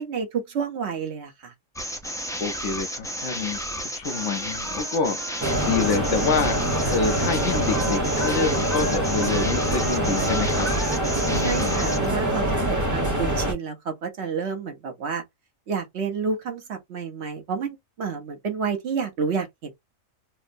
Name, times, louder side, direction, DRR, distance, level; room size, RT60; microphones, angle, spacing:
voice 1, 0.0-1.5 11.3-15.2 15.7-19.7, right 6 dB, 60° right, 1.0 m, -30 dB
sound 1, 1.8-12.1, equal, 5° left, 0.4 m, -32 dB
voice 2, 2.4-6.6 6.9-10.7 11.3-11.9, left 5 dB, 65° left, 1.0 m, -27 dB
Singing, 4.1-11.0, right 1 dB, 35° right, 1.1 m, -37 dB
sound 2, 5.4-13.5, right 1 dB, 15° right, 0.8 m, -24 dB
4.2 x 2.0 x 2.5 m
omnidirectional pair, 1.4 m